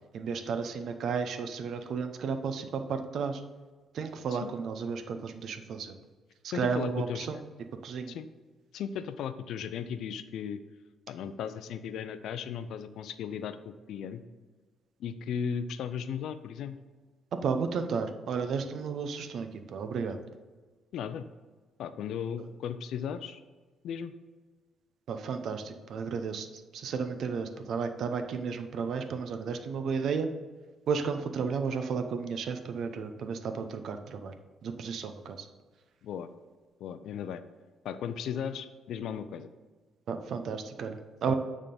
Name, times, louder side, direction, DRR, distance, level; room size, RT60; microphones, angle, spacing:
voice 1, 0.1-3.4 3.9-5.9 6.4-7.4 7.8-8.2 17.4-20.2 25.1-30.3 30.9-34.3 34.6-35.5 40.1-41.3, right 5 dB, 70° right, 8 dB, 0.7 m, -33 dB
voice 2, 6.5-7.3 8.1-8.3 8.7-10.6 11.1-14.2 15.0-16.8 20.9-21.3 21.8-23.4 23.8-24.1 36.0-36.3 36.8-37.4 37.8-39.5 41.3-41.4, left 7 dB, 75° left, 12 dB, 0.4 m, -36 dB
9.0 x 3.6 x 5.3 m, 1.3 s
cardioid pair, 90°, 0 cm